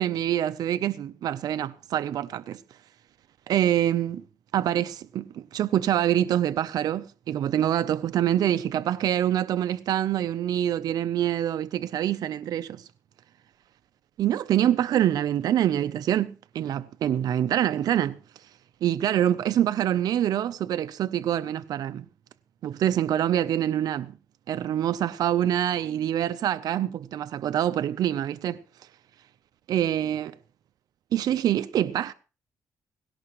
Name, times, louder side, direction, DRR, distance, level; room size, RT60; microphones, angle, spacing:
voice 1, 0.0-2.6 3.5-4.2 4.5-12.9 14.2-18.2 18.8-22.1 22.6-24.1 24.5-28.6 29.7-30.3 31.1-32.1, right 11 dB, 70° right, 0.6 m, -25 dB
17.5 x 17.5 x 3.1 m
cardioid pair, 95°, 7 cm